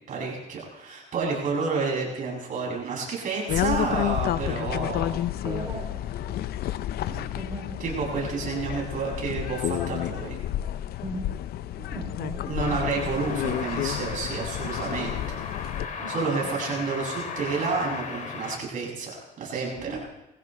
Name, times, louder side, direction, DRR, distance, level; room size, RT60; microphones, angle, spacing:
voice 1, 0.1-5.2 7.1-7.3 7.8-10.4 12.5-15.4 16.1-19.9, right 4 dB, 50° right, -2 dB, 7.6 m, -30 dB
sound 1, 3.5-15.9, left 12 dB, 65° left, 0.6 m, -30 dB
voice 2, 5.3-6.3 7.3-7.7 11.0-11.2 11.8-12.4 12.7-12.8 13.1-13.2 16.0-16.1 16.4-16.5 19.7-20.0, right 2 dB, 20° right, -2 dB, 3.4 m, -37 dB
sound 2, 12.6-18.6, left 5 dB, 50° left, 2.5 m, -36 dB
22.5 x 16.0 x 3.4 m, 0.95 s
cardioid pair, 110°, 17 cm